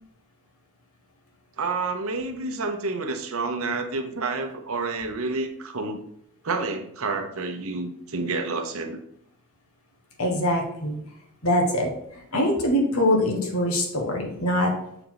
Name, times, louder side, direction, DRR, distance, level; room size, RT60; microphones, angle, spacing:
voice 1, 1.6-6.0 6.4-9.0, right 3 dB, 75° right, 6 dB, 0.9 m, -29 dB
voice 2, 10.2-11.0 11.4-14.7, left 1 dB, 80° left, 1 dB, 1.5 m, -23 dB
6.8 x 4.5 x 4.0 m, 0.72 s
head